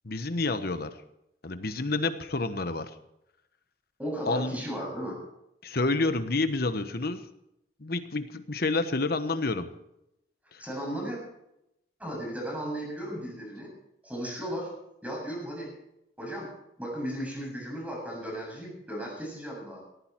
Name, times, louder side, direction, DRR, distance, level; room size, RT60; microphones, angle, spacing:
voice 1, 0.0-1.0 1.4-2.9 4.3-4.6 5.6-7.2 7.8-9.7 10.5-10.6, left 3 dB, 60° left, 10 dB, 1.2 m, -29 dB
voice 2, 4.0-5.2 10.6-11.2 12.0-13.7 14.0-14.7 15.0-15.7 16.2-16.5 16.8-19.8, equal, 10° right, -2 dB, 7.5 m, -35 dB
18.5 x 14.5 x 4.6 m, 0.84 s
head